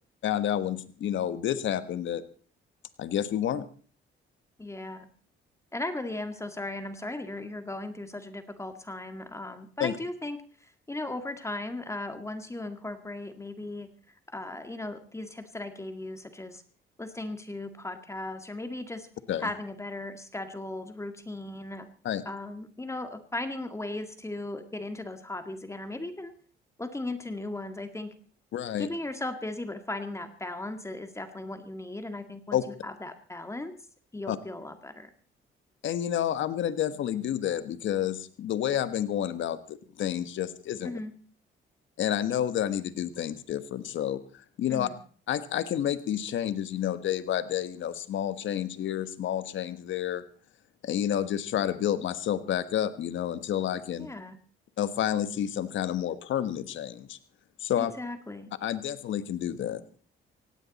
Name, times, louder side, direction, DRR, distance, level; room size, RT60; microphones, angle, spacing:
voice 1, 0.2-2.2 3.0-3.6 9.8-9.9 19.3-19.5 22.0-22.2 28.5-28.9 32.5-32.6 34.3-34.4 35.8-41.0 42.0-44.2 44.6-44.9 45.3-50.2 50.8-54.1 54.8-57.2 57.6-57.9 58.6-59.8, left 10 dB, 75° left, 13 dB, 1.4 m, -29 dB
voice 2, 4.6-5.1 5.7-13.9 14.3-16.6 17.0-19.1 19.4-21.9 22.3-26.3 26.8-28.1 28.8-33.7 34.1-35.1 40.8-41.1 44.7-45.0 54.0-54.4 57.7-58.5, left 2 dB, 15° left, 8 dB, 2.0 m, -37 dB
18.0 x 16.5 x 4.2 m, 0.42 s
cardioid pair, 90°, 20 cm